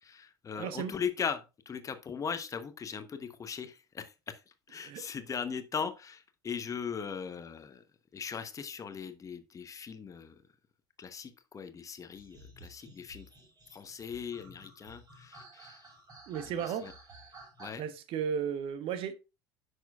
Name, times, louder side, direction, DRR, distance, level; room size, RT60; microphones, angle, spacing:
voice 1, 0.0-4.4 4.7-7.8 8.1-10.3 11.0-13.3 13.7-15.8 16.8-16.9 17.6-17.8, left 6 dB, 25° left, 1.0 m, -39 dB
voice 2, 0.5-0.9 4.8-5.0 16.3-16.9 17.8-19.1, right 8 dB, 45° right, 1.0 m, -34 dB
sound 1, 12.1-17.7, right 2 dB, 30° right, 4.6 m, -53 dB
10.5 x 6.3 x 2.4 m
figure-of-eight pair, 70°, 13 cm